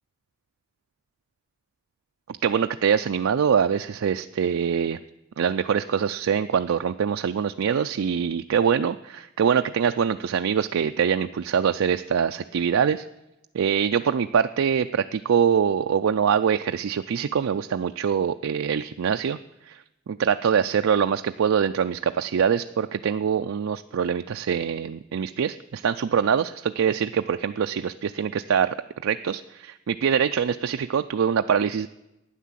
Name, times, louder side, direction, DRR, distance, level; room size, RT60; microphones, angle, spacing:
voice 1, 2.4-5.0 5.4-13.1 13.5-19.4 19.7-19.8 20.1-28.8 29.0-31.9, right 7 dB, 90° right, 7 dB, 0.4 m, -24 dB
12.0 x 9.5 x 7.5 m, 0.93 s
head